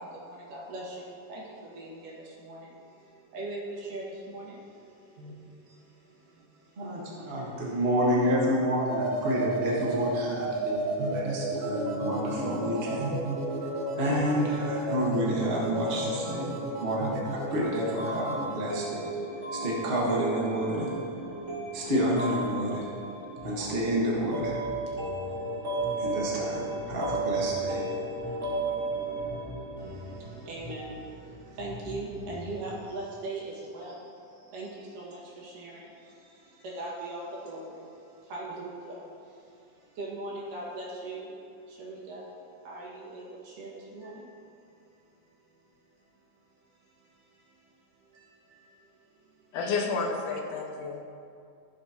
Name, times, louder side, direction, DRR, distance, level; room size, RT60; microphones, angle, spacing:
voice 1, 0.0-7.6 29.8-41.3 41.7-42.3 42.6-44.3 44.8-44.9 46.8-47.7 48.1-49.5, right 2 dB, 80° right, -5 dB, 3.5 m, -41 dB
voice 2, 6.8-13.2 14.0-16.5 16.8-19.1 19.5-20.9 21.7-22.8 23.4-24.6 26.0-27.8, equal, 50° right, -5 dB, 0.7 m, -29 dB
sound 1, 8.8-18.6, right 2 dB, 65° right, 1.7 m, -32 dB
sound 2, 18.0-30.6, right 2 dB, 15° right, 1.8 m, -34 dB
Bass guitar, 23.4-32.8, left 2 dB, 55° left, 2.0 m, -45 dB
voice 3, 49.5-51.0, left 4 dB, 75° left, 1 dB, 2.3 m, -30 dB
15.0 x 7.4 x 2.9 m, 2.5 s
omnidirectional pair, 3.7 m